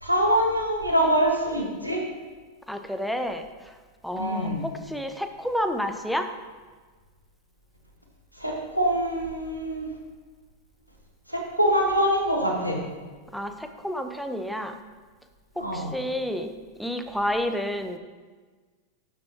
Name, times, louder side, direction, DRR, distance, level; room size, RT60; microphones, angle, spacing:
voice 1, 0.0-2.0 4.1-4.7 8.4-9.9 11.3-12.8 15.6-15.9, equal, 90° right, -2 dB, 1.8 m, -24 dB
voice 2, 2.7-3.4 4.0-6.3 13.3-13.5 13.8-14.7 15.7-16.5 16.8-18.0, equal, ahead, 6 dB, 0.8 m, -29 dB
12.5 x 7.4 x 3.1 m, 1.4 s
figure-of-eight pair, 90°, 0 cm